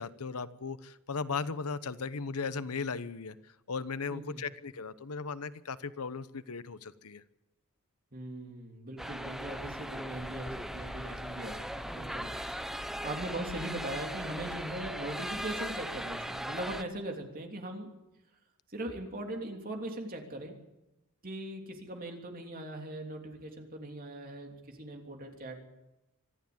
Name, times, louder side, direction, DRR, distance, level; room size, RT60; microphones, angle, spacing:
voice 1, 0.0-3.4 3.7-7.2, left 4 dB, 85° left, 14 dB, 1.0 m, -37 dB
voice 2, 4.1-4.4 8.1-17.9 18.7-20.5 21.2-25.6, right 1 dB, 40° right, 3 dB, 3.3 m, -40 dB
sound 1, 9.0-16.8, equal, ahead, 0.7 m, -38 dB
25.5 x 12.0 x 8.8 m, 0.96 s
head